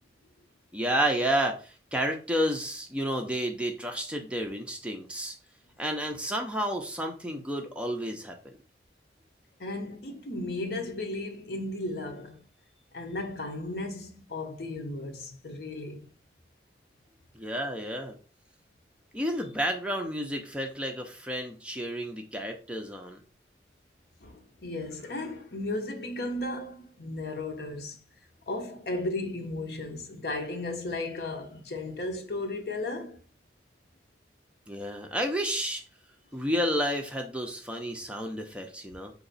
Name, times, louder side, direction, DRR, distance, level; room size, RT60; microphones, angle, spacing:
voice 1, 0.7-5.4 5.8-8.5 17.3-18.1 19.1-23.2 34.7-35.8 36.3-39.1, equal, 5° right, 0.6 m, -31 dB
voice 2, 9.6-12.4 12.9-16.1 24.2-28.0 28.5-33.2, left 2 dB, 65° left, 0.9 m, -35 dB
4.4 x 2.9 x 4.0 m
head